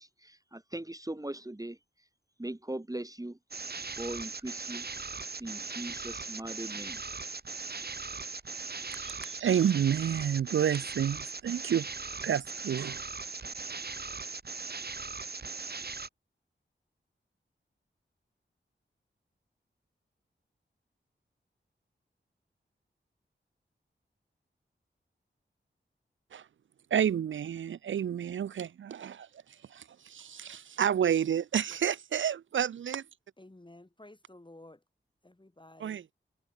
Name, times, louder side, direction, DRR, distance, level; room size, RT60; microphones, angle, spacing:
voice 1, 0.0-2.1 2.4-3.4 4.0-4.9 5.4-7.0, right 1 dB, 15° right, 2.2 m, -40 dB
sound 1, 3.5-16.1, right 4 dB, 55° right, 1.8 m, -39 dB
voice 2, 8.9-11.9 12.2-13.0 26.3-26.4 26.9-29.3 29.7-33.0 35.8-36.0, right 9 dB, 75° right, 0.4 m, -30 dB
voice 3, 33.4-34.8 35.2-36.1, left 1 dB, 25° left, 6.3 m, -53 dB
wide cardioid pair, 55°, 20 cm